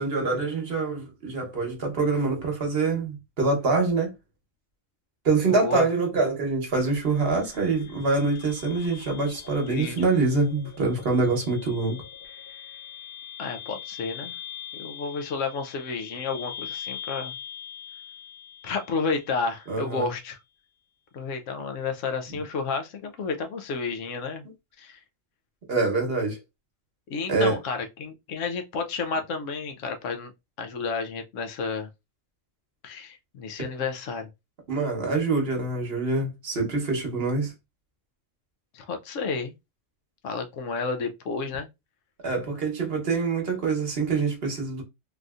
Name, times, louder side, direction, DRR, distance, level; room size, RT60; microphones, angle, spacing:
voice 1, 0.0-4.1 5.2-12.0 19.7-20.1 25.7-26.4 27.3-27.6 34.7-37.5 42.2-44.8, right 3 dB, 55° right, 1.1 m, -25 dB
voice 2, 5.5-5.9 9.7-10.0 13.4-14.3 14.8-17.3 18.6-20.4 21.1-24.4 24.8-25.0 27.1-30.3 30.6-31.9 32.8-34.3 38.7-39.5 40.2-41.7, left 4 dB, 80° left, 1.0 m, -31 dB
sound 1, 6.7-19.7, left 8 dB, 45° left, 1.0 m, -42 dB
3.4 x 2.6 x 2.3 m
omnidirectional pair, 1.3 m